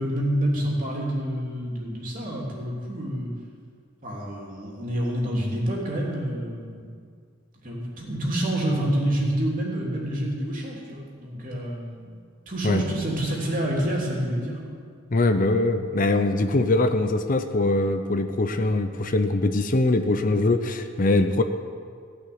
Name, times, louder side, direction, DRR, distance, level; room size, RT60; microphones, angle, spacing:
voice 1, 0.0-3.3 4.0-6.9 7.6-12.2 12.5-14.6, right 1 dB, 45° right, -3 dB, 3.0 m, -28 dB
voice 2, 15.1-21.4, left 2 dB, 45° left, 8 dB, 0.6 m, -22 dB
16.5 x 5.9 x 9.4 m, 2.1 s
head